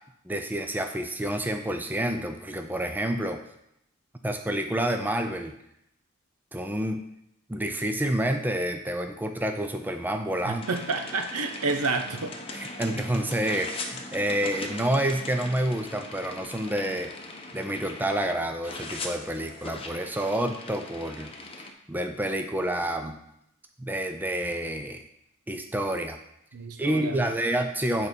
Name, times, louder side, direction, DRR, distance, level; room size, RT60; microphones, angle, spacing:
voice 1, 0.3-3.4 4.2-5.5 6.5-7.0 7.5-10.7 12.5-17.2 17.5-21.3 21.6-23.2 23.8-25.0 25.5-26.2 26.8-28.1, right 1 dB, 10° right, 5 dB, 0.5 m, -28 dB
voice 2, 10.4-12.4 26.5-27.3, right 3 dB, 85° right, 6 dB, 0.9 m, -30 dB
sound 1, 10.6-18.3 18.6-21.7, left 2 dB, 25° left, 0.8 m, -40 dB
8.6 x 4.2 x 5.2 m, 0.78 s
head